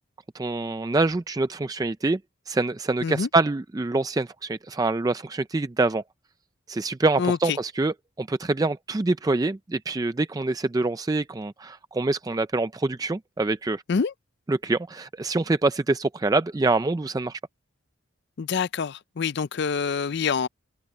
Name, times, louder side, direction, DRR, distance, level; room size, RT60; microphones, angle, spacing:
voice 1, 0.3-2.2 2.5-6.0 6.7-13.8 14.5-17.4, right 3 dB, 15° right, 0.3 m, -25 dB
voice 2, 18.4-20.5, left 5 dB, 50° left, 0.4 m, -26 dB
open air
head